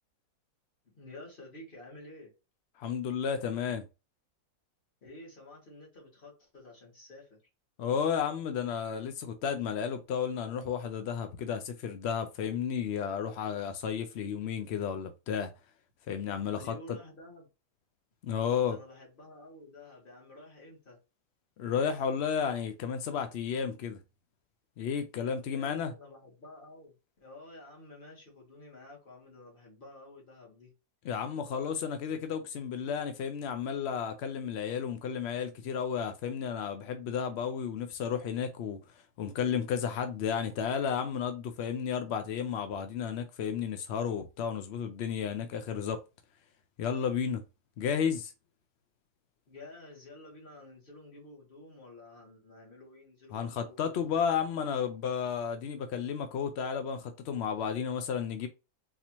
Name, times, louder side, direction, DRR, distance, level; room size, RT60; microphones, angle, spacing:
voice 1, 0.8-2.3 5.0-7.4 16.5-17.5 18.6-21.0 25.5-27.0 27.2-30.7 49.5-54.9, left 2 dB, 35° left, 1.7 m, -51 dB
voice 2, 2.8-3.8 7.8-15.5 16.1-16.8 18.2-18.8 21.6-24.0 24.8-25.9 31.0-46.0 46.8-47.4 47.8-48.3 53.3-58.5, left 7 dB, 75° left, 0.6 m, -32 dB
4.1 x 2.7 x 2.9 m
omnidirectional pair, 1.7 m